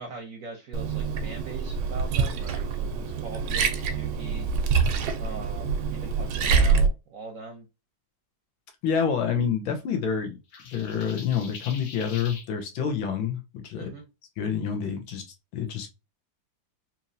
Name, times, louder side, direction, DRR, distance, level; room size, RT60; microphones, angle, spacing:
voice 1, 0.0-7.7 13.8-14.1, right 3 dB, 65° right, 0.9 m, -42 dB
Liquid, 0.7-6.9, right 5 dB, 90° right, 1.4 m, -25 dB
voice 2, 8.8-10.4 10.7-13.9 14.4-15.2 15.5-15.9, left 7 dB, 85° left, 1.6 m, -28 dB
sound 1, 10.5-12.5, left 5 dB, 60° left, 1.1 m, -43 dB
4.3 x 2.9 x 2.6 m
omnidirectional pair, 2.2 m